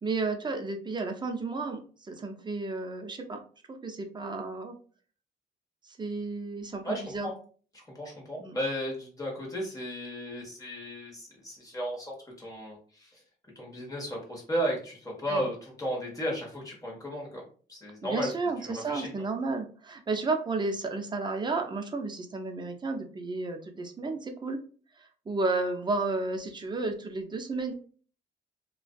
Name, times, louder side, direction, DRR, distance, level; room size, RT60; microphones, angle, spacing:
voice 1, 0.0-1.8 2.1-3.4 3.7-4.8 5.9-7.3 8.4-8.6 15.3-15.5 18.0-24.6 25.0-27.8, right 3 dB, 20° right, 4 dB, 0.5 m, -32 dB
voice 2, 6.8-7.4 7.7-13.2 13.5-17.4 17.7-18.3 18.6-19.1, equal, 15° left, -2 dB, 1.1 m, -34 dB
2.4 x 2.4 x 2.2 m, 0.41 s
cardioid pair, 90°, 20 cm